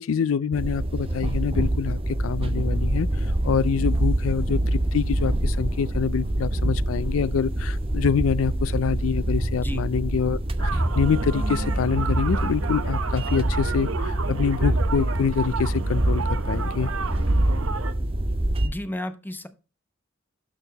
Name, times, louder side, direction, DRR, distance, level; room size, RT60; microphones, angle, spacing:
voice 1, 0.0-16.9, left 6 dB, 85° left, 0.4 m, -26 dB
sound 1, 0.5-18.7, right 1 dB, 30° right, 0.7 m, -25 dB
sound 2, 10.6-17.9, right 5 dB, 90° right, 0.8 m, -33 dB
voice 2, 18.6-19.5, left 1 dB, 10° left, 0.8 m, -32 dB
12.0 x 4.5 x 4.0 m
head